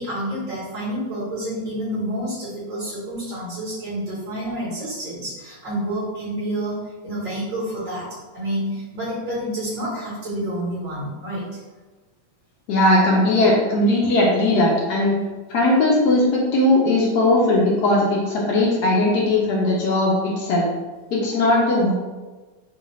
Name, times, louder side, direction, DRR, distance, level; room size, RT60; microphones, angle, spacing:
voice 1, 0.0-6.8 7.0-8.1 8.3-11.4, right 1 dB, 65° right, -9 dB, 1.9 m, -28 dB
voice 2, 12.7-15.2 15.5-20.7 21.1-21.9, left 1 dB, 70° left, -3 dB, 1.0 m, -18 dB
3.9 x 2.4 x 3.0 m, 1.2 s
omnidirectional pair, 2.1 m